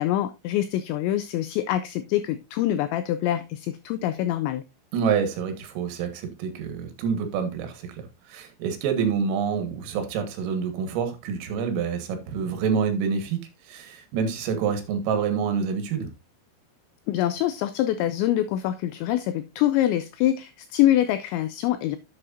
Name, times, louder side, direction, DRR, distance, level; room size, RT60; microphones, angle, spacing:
voice 1, 0.0-4.6 17.1-22.0, left 13 dB, 90° left, 2.6 m, -25 dB
voice 2, 4.9-13.4 13.7-16.1, right 6 dB, 90° right, 4.1 m, -27 dB
11.0 x 7.8 x 2.6 m
omnidirectional pair, 5.8 m